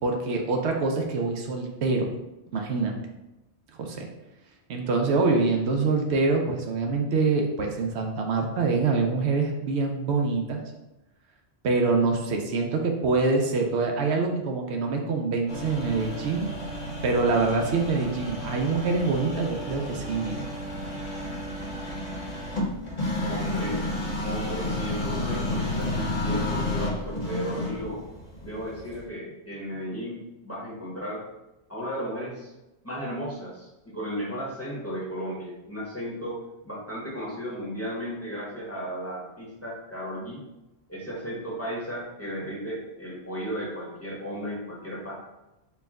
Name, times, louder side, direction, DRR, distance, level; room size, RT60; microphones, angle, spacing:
voice 1, 0.0-2.1 2.5-3.0 3.8-4.1 4.7-10.6 11.6-16.5 17.0-20.5, right 3 dB, 75° right, 2 dB, 0.9 m, -25 dB
sound 1, 15.5-29.0, left 1 dB, 40° left, 1.0 m, -31 dB
voice 2, 23.2-23.8 24.2-28.0 28.4-31.2 31.7-32.5 32.8-40.4 40.9-45.1, equal, 15° left, -6 dB, 0.9 m, -35 dB
4.5 x 2.2 x 3.5 m, 0.97 s
omnidirectional pair, 1.1 m